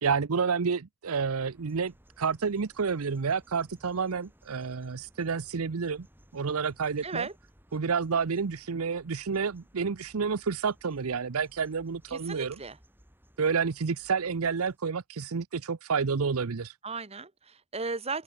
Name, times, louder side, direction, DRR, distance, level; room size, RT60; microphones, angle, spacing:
voice 1, 0.0-6.1 6.3-7.3 7.7-12.6 13.4-16.7, right 5 dB, 80° right, 0.7 m, -29 dB
sound 1, 1.4-14.8, equal, 10° right, 7.1 m, -60 dB
voice 2, 7.0-7.3 12.1-12.8 16.8-18.2, right 4 dB, 30° right, 1.5 m, -36 dB
open air
head